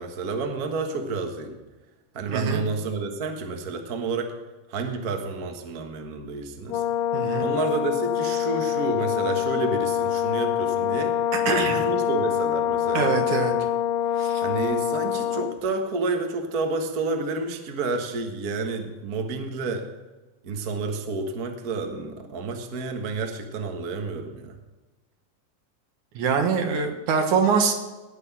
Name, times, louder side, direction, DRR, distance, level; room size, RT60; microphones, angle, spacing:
voice 1, 0.0-1.6 2.1-4.3 4.7-6.8 7.4-11.2 11.5-13.2 14.4-19.8 20.4-24.6, right 3 dB, 45° right, 4 dB, 1.2 m, -30 dB
voice 2, 2.3-2.6 7.1-7.5 11.3-11.8 12.9-13.5 14.2-14.4 26.2-27.7, right 5 dB, 75° right, 4 dB, 2.8 m, -24 dB
Brass instrument, 6.7-15.6, left 10 dB, 90° left, 2.3 m, -25 dB
18.5 x 6.2 x 6.0 m, 1.2 s
omnidirectional pair, 3.7 m